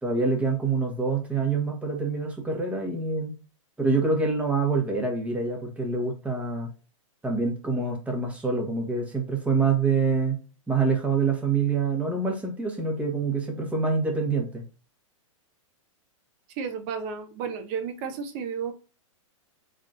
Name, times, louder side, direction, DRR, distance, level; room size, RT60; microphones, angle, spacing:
voice 1, 0.0-3.3 3.8-6.7 7.2-10.4 10.7-14.6, right 4 dB, 10° right, 1 dB, 1.2 m, -26 dB
voice 2, 16.5-18.8, right 6 dB, 40° right, 6 dB, 0.9 m, -32 dB
4.0 x 3.6 x 2.4 m, 0.34 s
hypercardioid pair, 130°, 17 cm